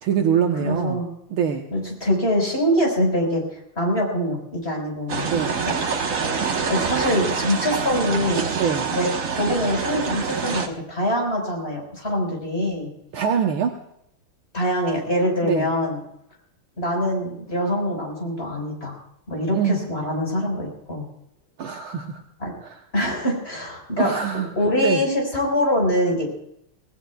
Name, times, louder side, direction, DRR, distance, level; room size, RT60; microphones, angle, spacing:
voice 1, 0.0-1.0 1.3-1.7 5.3-5.6 8.6-8.9 13.1-13.8 15.4-15.7 19.5-19.8 21.6-22.2 22.6-22.8 24.0-24.5 24.8-25.0, right 8 dB, 70° right, 3 dB, 1.8 m, -24 dB
voice 2, 0.6-1.1 1.7-3.4 3.8-5.3 5.7-5.8 6.4-8.4 8.9-12.9 14.5-16.0 16.8-18.9 19.3-21.0 22.4-22.5 22.9-24.1 24.6-26.2, equal, 25° left, 0 dB, 5.2 m, -24 dB
sound 1, 5.1-10.7, right 5 dB, 45° right, 1.5 m, -26 dB
26.5 x 18.5 x 2.3 m, 0.76 s
omnidirectional pair, 2.4 m